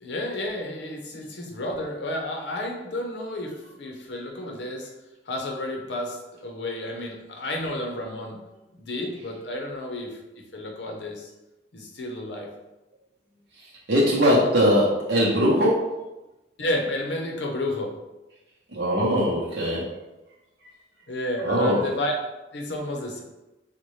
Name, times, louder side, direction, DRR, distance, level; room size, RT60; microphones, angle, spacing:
voice 1, 0.0-3.5 3.8-4.9 5.3-8.4 8.7-10.2 10.5-11.3 11.7-12.5 16.6-17.9 21.1-22.1 22.5-23.2, left 1 dB, 75° left, 1 dB, 0.7 m, -31 dB
voice 2, 13.9-15.8 18.7-19.8 21.4-21.8, equal, 75° right, -6 dB, 0.7 m, -20 dB
4.0 x 2.2 x 3.1 m, 1.0 s
head